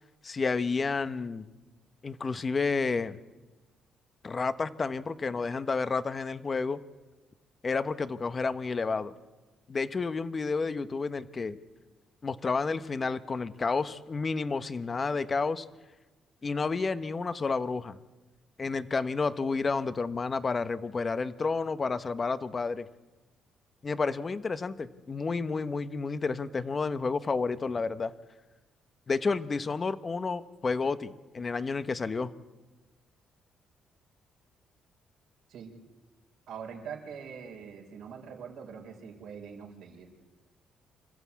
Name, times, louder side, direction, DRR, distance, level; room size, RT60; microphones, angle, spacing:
voice 1, 0.2-1.5 2.0-3.2 4.2-6.8 7.6-9.1 9.7-11.6 12.2-15.7 16.4-18.0 18.6-22.9 23.8-28.1 29.1-32.3, left 4 dB, 35° left, 12 dB, 1.0 m, -30 dB
voice 2, 36.5-40.1, right 7 dB, 85° right, 0 dB, 4.8 m, -43 dB
27.0 x 14.0 x 8.4 m, 1.2 s
cardioid pair, 90°, 0 cm